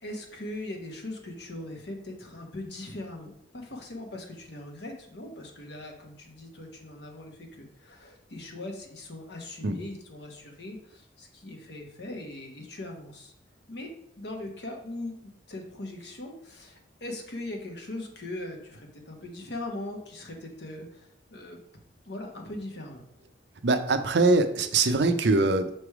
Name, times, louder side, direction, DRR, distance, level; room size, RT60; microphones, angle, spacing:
voice 1, 0.0-13.3 13.7-15.2 15.5-21.6 22.0-23.0, left 1 dB, 60° left, 2 dB, 1.1 m, -40 dB
voice 2, 23.6-25.8, right 3 dB, 65° right, 8 dB, 0.5 m, -23 dB
6.0 x 3.3 x 4.7 m, 0.71 s
head